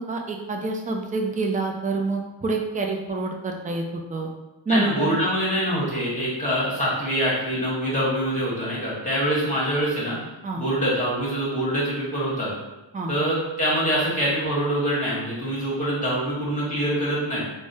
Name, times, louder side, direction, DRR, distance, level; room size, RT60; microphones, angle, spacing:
voice 1, 0.0-4.3 4.7-5.1 10.4-10.6 12.9-13.1, right 3 dB, 20° right, 2 dB, 0.4 m, -27 dB
voice 2, 4.7-10.2 10.5-12.5 13.1-17.4, equal, 15° left, -7 dB, 1.5 m, -24 dB
3.4 x 2.2 x 2.6 m, 1.0 s
cardioid pair, 65°, 48 cm